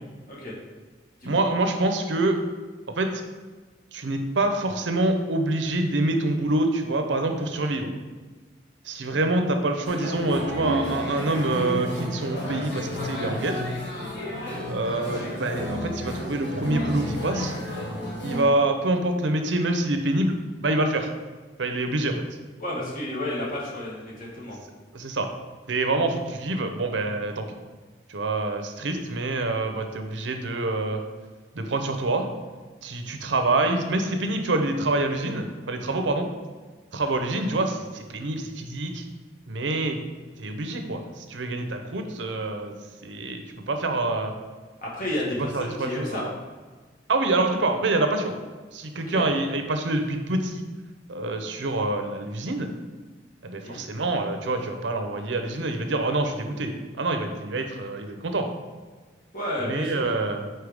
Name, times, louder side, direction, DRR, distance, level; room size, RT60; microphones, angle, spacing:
voice 1, 1.2-2.4 2.9-3.2 3.9-7.9 8.8-13.6 14.7-17.5 18.2-21.1 21.6-22.2 24.9-25.3 25.7-27.4 28.1-31.0 31.5-32.3 32.8-36.3 36.9-39.0 39.5-40.0 40.4-42.7 43.0-44.3 45.5-46.3 47.1-48.3 48.7-50.6 51.1-52.7 53.4-58.5 59.7-60.5, right 2 dB, 85° right, 6 dB, 0.7 m, -26 dB
cafe sound music voices, 9.8-18.4, equal, 65° left, 1.4 m, -32 dB
voice 2, 22.6-24.6 44.8-46.2 49.1-49.3 53.6-53.8 59.3-60.1, left 1 dB, 50° left, -5 dB, 1.8 m, -31 dB
4.7 x 4.5 x 5.0 m, 1.4 s
head